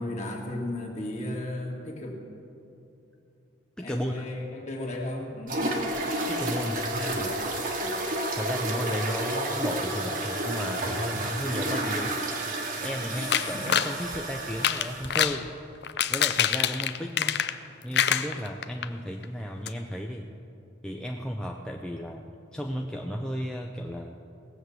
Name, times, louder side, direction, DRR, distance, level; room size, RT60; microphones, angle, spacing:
voice 1, 0.0-2.2 3.8-5.6 6.5-7.3 7.8-7.9 13.1-13.8 16.9-17.2, left 1 dB, 35° left, 0 dB, 1.9 m, -35 dB
voice 2, 3.8-4.1 6.3-7.3 8.4-12.2 12.8-15.5 16.1-17.5 17.8-20.3 20.8-24.2, equal, 5° left, 1 dB, 0.5 m, -34 dB
sound 1, 5.5-15.1, right 1 dB, 45° right, 1.3 m, -31 dB
sound 2, 13.3-13.9 14.5-15.4 15.8-17.7 17.9-18.9 19.2-19.3 19.7-19.8, left 9 dB, 55° left, 0.5 m, -25 dB
18.0 x 7.9 x 7.0 m, 2.7 s
head